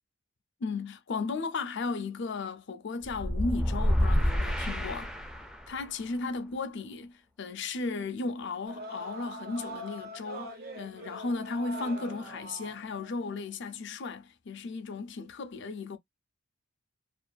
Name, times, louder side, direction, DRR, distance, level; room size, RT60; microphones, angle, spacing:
voice 1, 0.6-5.1 5.7-16.0, left 3 dB, 60° left, 0.5 m, -35 dB
sound 1, 3.1-5.7, equal, 5° right, 0.4 m, -28 dB
sound 2, 8.7-13.5, right 1 dB, 50° right, 0.8 m, -43 dB
2.5 x 2.5 x 2.2 m
head